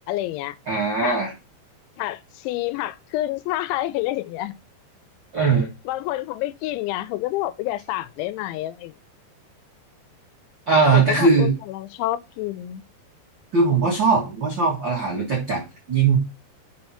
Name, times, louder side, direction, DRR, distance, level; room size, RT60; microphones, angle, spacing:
voice 1, 0.1-0.6 1.0-1.2 2.0-4.6 5.4-5.5 5.9-9.0 10.9-12.8, left 15 dB, 90° left, 3.0 m, -28 dB
voice 2, 0.7-1.3 5.3-5.7 10.7-11.5 13.5-15.6 15.9-16.2, right 4 dB, 90° right, 1.0 m, -19 dB
6.1 x 4.4 x 5.7 m
omnidirectional pair, 5.2 m